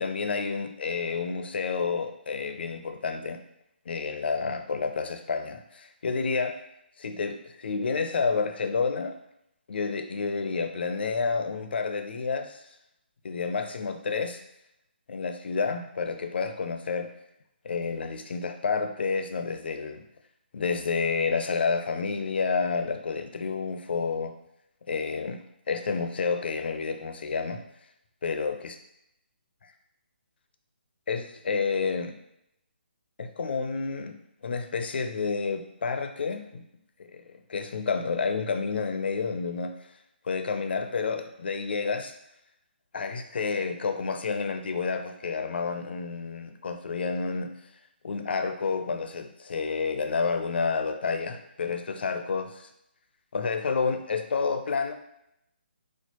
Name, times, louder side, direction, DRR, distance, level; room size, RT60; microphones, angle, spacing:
voice 1, 0.0-3.4 3.9-6.6 7.0-9.2 9.7-12.6 13.2-14.4 15.1-17.1 17.6-20.0 20.5-24.3 24.9-25.4 25.7-27.6 28.2-28.7 31.1-32.2 33.2-34.2 34.4-36.6 37.0-39.7 40.2-42.1 42.9-47.5 48.0-52.7 53.3-54.9, left 5 dB, 65° left, 7 dB, 0.4 m, -29 dB
4.3 x 2.3 x 2.8 m, 0.79 s
hypercardioid pair, 160°, 6 cm